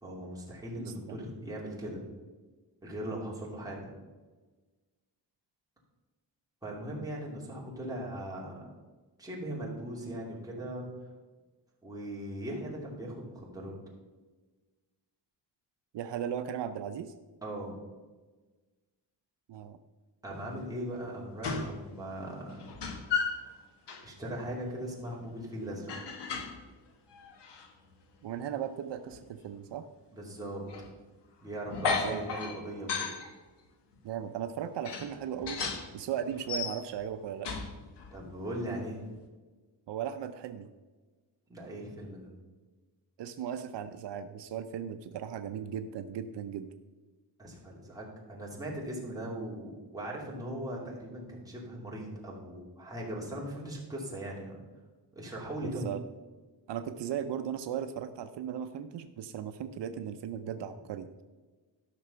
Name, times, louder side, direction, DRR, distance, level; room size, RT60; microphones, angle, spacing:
voice 1, 0.0-2.0 2.8-3.9 6.6-8.6 9.2-10.9 11.8-13.8 17.4-17.7 20.2-22.6 24.0-25.9 30.1-30.6 31.4-33.1 38.1-39.0 41.5-42.3 47.4-54.6 55.1-55.9, right 1 dB, 10° right, -4 dB, 2.6 m, -39 dB
voice 2, 0.8-1.2 15.9-17.1 19.5-19.8 28.2-29.8 31.9-32.2 34.0-35.6 35.9-37.5 39.9-40.7 43.2-46.7 55.6-56.0 56.7-61.2, right 9 dB, 75° right, 9 dB, 0.7 m, -37 dB
sound 1, 21.0-21.1 21.4-21.8 22.1-23.4 23.9-24.1 25.9-26.7 27.1-27.7 29.1-29.2 30.7-30.9 31.7-33.3 34.0-34.1 34.8-35.9 36.3-37.1 37.4-38.2, left 5 dB, 75° left, 1.5 m, -35 dB
13.0 x 6.1 x 5.6 m, 1.3 s
wide cardioid pair, 160°, 42 cm